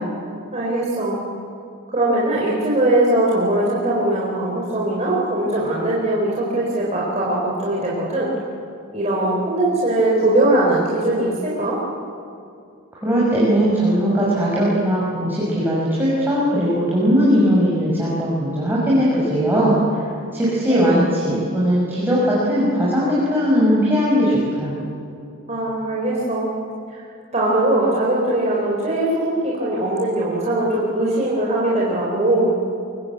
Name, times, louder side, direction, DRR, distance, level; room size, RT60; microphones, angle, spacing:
voice 1, 0.5-1.2 1.9-8.3 8.9-11.8 20.7-20.9 25.5-26.5 26.9-27.0 27.3-32.5, right 1 dB, 30° right, -5 dB, 4.3 m, -20 dB
voice 2, 12.9-19.8 20.3-24.8, equal, 10° right, -8 dB, 6.2 m, -19 dB
24.0 x 23.5 x 8.4 m, 2.4 s
head